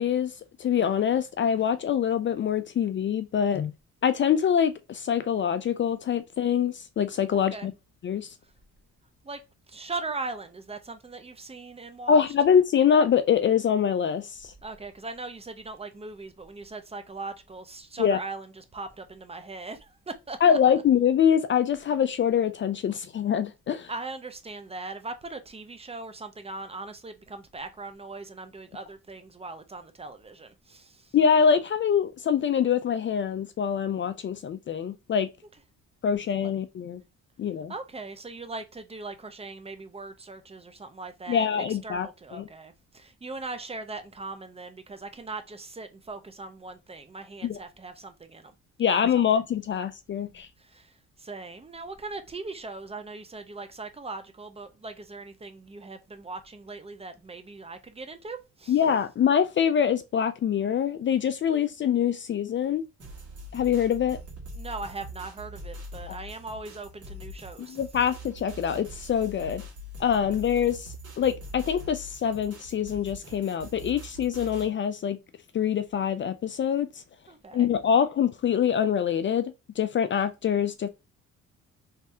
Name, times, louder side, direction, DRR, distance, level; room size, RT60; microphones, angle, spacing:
voice 1, 0.0-3.7 4.0-7.7 8.0-8.3 12.1-14.5 18.0-18.2 20.4-23.9 31.1-35.3 36.0-37.0 37.4-37.7 41.3-42.5 47.4-47.6 48.8-50.5 58.7-62.9 63.5-64.2 66.1-66.2 67.6-69.6 70.0-75.2 75.5-77.0 77.5-80.9, left 8 dB, 40° left, 0.4 m, -24 dB
voice 2, 7.3-7.7 9.2-9.4 9.7-12.2 14.6-20.6 23.9-31.1 37.7-41.5 41.8-48.5 48.9-49.2 50.6-50.9 51.2-58.7 64.5-67.8 77.3-77.7, right 3 dB, 20° right, 0.6 m, -39 dB
sound 1, 63.0-74.7, equal, 50° right, 1.7 m, -43 dB
3.2 x 2.7 x 3.4 m
cardioid pair, 90°, 30 cm